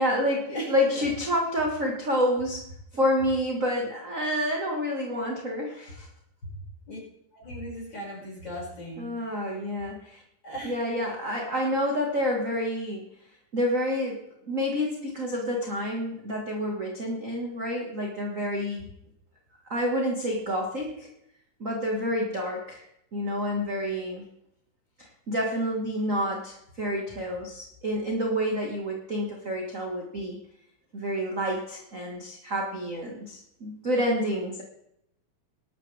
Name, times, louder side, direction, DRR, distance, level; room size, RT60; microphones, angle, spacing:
voice 1, 0.0-2.6 2.9-6.1 9.0-10.2 10.6-13.1 13.5-14.2 14.5-18.9 19.7-21.1 21.6-22.8 23.1-24.2 25.0-30.4 30.9-34.6, equal, 30° right, 0 dB, 1.7 m, -28 dB
voice 2, 0.5-1.0 6.4-6.5 6.9-7.0 7.3-9.1 10.4-10.8, equal, 30° left, -5 dB, 6.9 m, -37 dB
21.5 x 12.5 x 3.5 m, 0.79 s
omnidirectional pair, 3.7 m